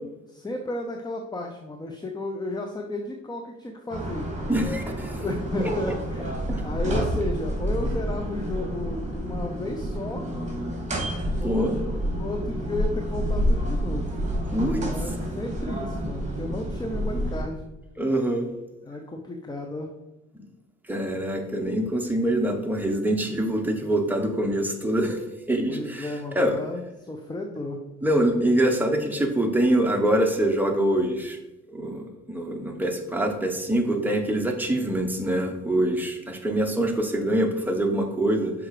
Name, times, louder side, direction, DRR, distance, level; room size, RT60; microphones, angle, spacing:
voice 1, 0.3-4.3 5.2-6.3 6.6-10.3 11.4-14.1 14.8-17.6 18.8-19.9 25.7-27.8, left 2 dB, 15° left, 4 dB, 0.7 m, -33 dB
sound 1, 3.9-17.4, equal, 25° right, 2.5 m, -29 dB
voice 2, 4.5-5.2 5.9-6.0 11.4-11.8 14.5-14.8 18.0-18.5 20.9-26.1 26.3-26.6 28.0-31.4 31.7-38.5, right 1 dB, 5° right, 2 dB, 1.2 m, -24 dB
6.3 x 4.9 x 4.9 m, 0.99 s
cardioid pair, 90°, 30 cm